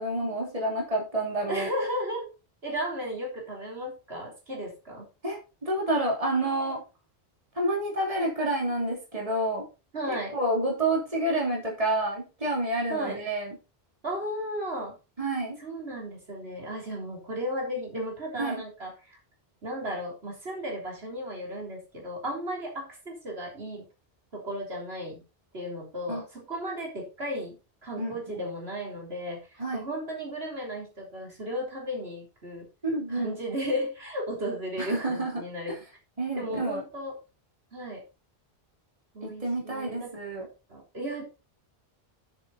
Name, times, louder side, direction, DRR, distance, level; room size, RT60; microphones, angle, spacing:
voice 1, 0.0-1.7 5.2-6.8 7.5-9.6 10.1-13.6 15.2-15.6 18.4-18.6 26.1-26.2 28.0-28.4 29.6-29.8 32.9-33.3 34.8-35.4 35.7-35.8 36.2-36.8 39.2-40.5, right 1 dB, 35° right, -2 dB, 3.1 m, -29 dB
voice 2, 1.5-2.3 2.6-5.1 9.9-10.4 12.9-13.2 14.0-15.0 15.6-19.2 19.6-23.9 24.3-25.2 25.5-27.6 27.8-32.7 33.1-35.7 36.4-37.2 37.7-38.1 39.1-40.1 40.4-41.3, equal, 80° right, -1 dB, 3.7 m, -34 dB
9.6 x 7.0 x 4.1 m, 0.29 s
omnidirectional pair, 1.0 m